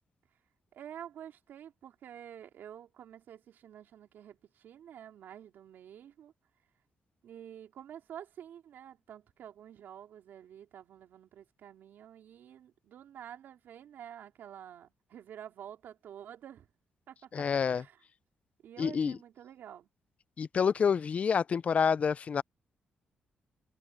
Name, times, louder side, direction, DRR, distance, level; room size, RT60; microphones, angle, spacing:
voice 1, 0.7-6.3 7.2-16.7 17.1-18.0 18.6-19.9, right 10 dB, 80° right, 3.6 m, -49 dB
voice 2, 17.3-17.8 18.8-19.2 20.4-22.4, left 6 dB, 40° left, 0.4 m, -28 dB
cardioid pair, 135°, 3 cm